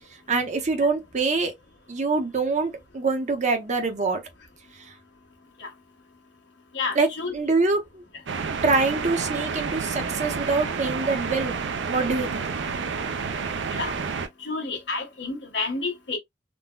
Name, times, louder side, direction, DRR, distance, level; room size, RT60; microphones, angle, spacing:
voice 1, 0.3-1.5 1.9-4.2 4.8-4.9 7.0-7.1 7.3-8.0 8.6-11.6 11.9-12.5, right 3 dB, 40° right, 0.8 m, -25 dB
voice 2, 6.7-7.3 13.7-13.9 14.4-16.2, left 3 dB, 70° left, 1.5 m, -30 dB
sound 1, 8.3-14.3, right 5 dB, 75° right, 0.6 m, -30 dB
3.8 x 2.2 x 2.3 m
head